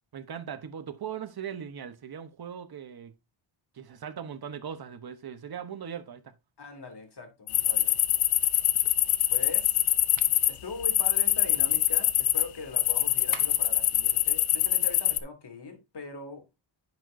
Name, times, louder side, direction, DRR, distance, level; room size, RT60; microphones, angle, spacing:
voice 1, 0.1-3.1 3.7-6.3, right 8 dB, 45° right, 1.1 m, -39 dB
voice 2, 6.6-8.0 9.3-9.8 10.5-16.4, left 4 dB, 50° left, 2.8 m, -41 dB
sound 1, 7.5-10.5 10.8-12.4 12.8-15.2, left 13 dB, 80° left, 0.8 m, -24 dB
sound 2, 10.2-10.4 13.3-13.8, right 9 dB, 75° right, 1.1 m, -43 dB
10.0 x 6.4 x 2.7 m
cardioid pair, 75°, 50 cm